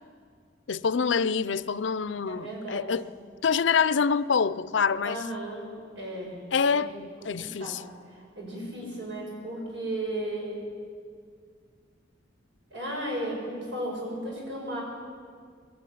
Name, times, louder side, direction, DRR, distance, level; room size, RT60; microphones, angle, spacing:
voice 1, 0.7-3.1 3.4-5.2 6.5-7.8, left 6 dB, 80° left, 0.5 m, -26 dB
voice 2, 2.3-2.9 5.0-6.4 6.7-6.9 7.2-7.8 8.2-10.6 12.7-14.8, right 1 dB, 90° right, 7.3 m, -35 dB
21.0 x 13.5 x 9.2 m
head